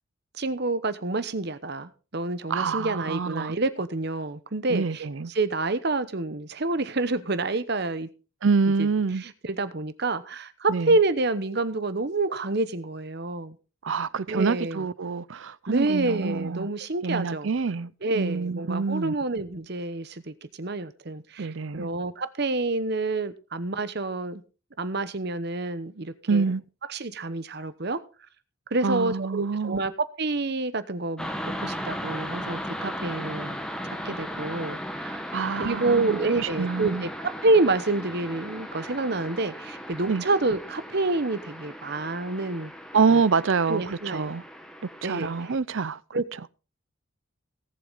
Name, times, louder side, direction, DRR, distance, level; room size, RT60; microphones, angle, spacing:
voice 1, 0.4-5.0 5.3-8.1 8.8-8.9 9.2-13.5 14.3-14.8 15.7-17.5 18.0-24.4 24.8-26.4 26.9-28.0 28.7-33.6 34.0-35.2 35.6-42.7 43.1-43.2 43.7-44.3 45.0-45.3 46.1-46.2, right 2 dB, 50° right, 0.9 m, -28 dB
voice 2, 2.5-3.6 4.7-5.3 8.4-9.2 10.7-11.0 13.8-16.7 17.0-19.2 21.4-21.9 26.3-26.6 28.8-29.8 35.3-36.2 36.6-37.1 40.1-40.2 42.9-44.4 45.0-46.2, right 5 dB, 65° right, 0.6 m, -26 dB
sound 1, 31.2-45.5, equal, 5° left, 1.4 m, -37 dB
18.0 x 7.7 x 4.0 m
head